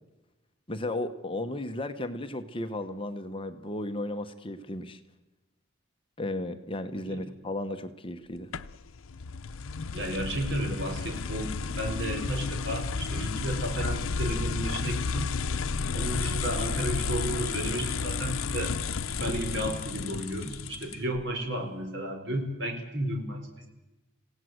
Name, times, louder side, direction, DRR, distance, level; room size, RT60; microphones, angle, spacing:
voice 1, 0.7-5.0 6.2-8.5, left 1 dB, 25° left, 9 dB, 1.0 m, -34 dB
sound 1, 8.5-21.2, left 4 dB, 85° left, 0.7 m, -32 dB
voice 2, 9.9-15.3 15.9-18.7 19.2-23.7, right 1 dB, 55° right, 4 dB, 4.4 m, -33 dB
26.5 x 17.0 x 7.9 m, 1.0 s
head